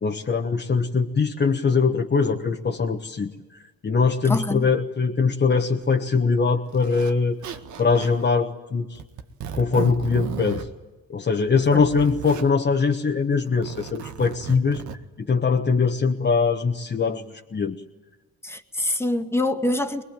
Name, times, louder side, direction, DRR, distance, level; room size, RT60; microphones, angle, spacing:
voice 1, 0.0-9.0 9.5-10.7 11.1-14.8 15.2-17.8, left 5 dB, 35° left, 2 dB, 1.4 m, -22 dB
voice 2, 4.3-4.7 11.7-11.9 18.4-20.0, left 1 dB, 10° left, 7 dB, 1.9 m, -25 dB
Zipper (clothing), 5.8-5.9 6.7-7.1 7.4-8.2 8.9-10.7 11.4-12.5 13.5-15.0, right 8 dB, 75° right, 1.7 m, -35 dB
23.0 x 21.0 x 9.1 m, 1.2 s
cardioid pair, 90°, 30 cm